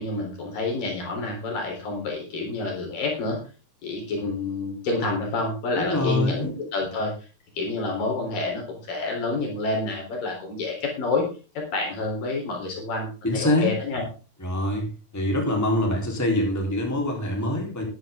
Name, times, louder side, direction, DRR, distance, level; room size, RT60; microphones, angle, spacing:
voice 1, 0.0-3.4 3.8-7.1 7.6-11.3 11.6-14.0, left 3 dB, 70° left, 0 dB, 5.7 m, -28 dB
voice 2, 5.8-6.5 13.2-13.7 14.4-14.9 15.1-17.8, left 1 dB, 5° left, 1 dB, 3.6 m, -24 dB
14.0 x 12.0 x 3.8 m, 0.35 s
omnidirectional pair, 4.1 m